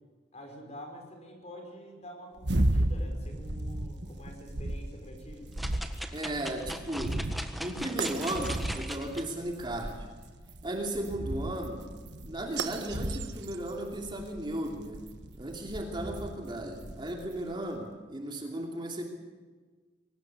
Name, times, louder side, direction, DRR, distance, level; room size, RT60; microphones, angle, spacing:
voice 1, 0.3-5.5, equal, 35° left, 3 dB, 5.6 m, -47 dB
sound 1, 2.4-17.5, right 1 dB, 65° right, 1.5 m, -35 dB
sound 2, 5.6-9.2 9.8-9.9, equal, ahead, 1.6 m, -40 dB
voice 2, 6.1-7.2 7.6-10.1 10.6-11.8 12.2-15.0 15.3-19.0, right 1 dB, 25° right, 1 dB, 2.9 m, -35 dB
23.0 x 19.0 x 8.4 m, 1.4 s
head